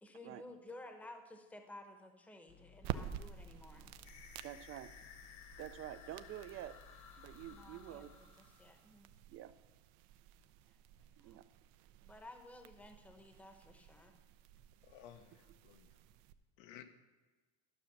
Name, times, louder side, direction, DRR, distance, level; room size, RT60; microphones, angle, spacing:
voice 1, 0.0-3.9 7.5-9.1 10.6-11.4 12.0-14.1, left 1 dB, 5° left, 5 dB, 0.8 m, -55 dB
sound 1, 2.5-8.2, left 7 dB, 30° left, 0.6 m, -62 dB
sound 2, 2.8-16.3, right 11 dB, 80° right, 0.6 m, -51 dB
sound 3, 4.0-9.0, left 7 dB, 50° left, 1.2 m, -58 dB
voice 2, 4.4-4.9 5.6-6.8 7.2-8.1 9.3-9.5 11.2-11.5, right 12 dB, 35° right, 14 dB, 0.4 m, -48 dB
voice 3, 14.8-16.0 16.6-16.8, left 10 dB, 90° left, 8 dB, 1.1 m, -56 dB
12.5 x 6.1 x 5.9 m, 1.2 s
cardioid pair, 145°, 37 cm